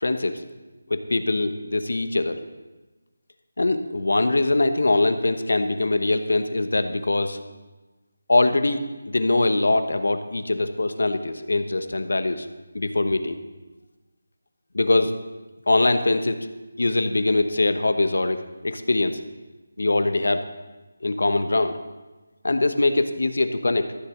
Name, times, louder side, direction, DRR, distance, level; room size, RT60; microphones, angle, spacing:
voice 1, 0.0-0.4 0.9-2.4 3.6-7.4 8.3-12.5 12.7-13.4 14.7-15.2 15.7-16.4 16.8-19.2 19.8-20.4 21.0-21.8 22.4-23.9, left 2 dB, 75° left, 9 dB, 1.1 m, -22 dB
14.0 x 6.8 x 7.3 m, 1.2 s
figure-of-eight pair, 180°, 0 cm